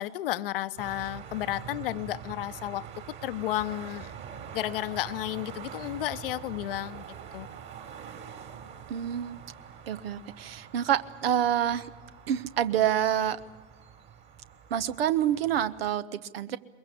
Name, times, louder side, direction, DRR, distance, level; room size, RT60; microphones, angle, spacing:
voice 1, 0.0-2.8 3.2-7.0 7.3-7.5, left 14 dB, 55° left, 13 dB, 0.9 m, -32 dB
sound 1, 0.8-15.9, right 8 dB, 35° right, 3.2 m, -45 dB
voice 2, 8.9-9.4 9.9-11.9 12.3-13.4 14.7-16.6, right 10 dB, 55° right, 15 dB, 1.1 m, -27 dB
22.0 x 22.0 x 8.3 m, 1.3 s
figure-of-eight pair, 85°, 34 cm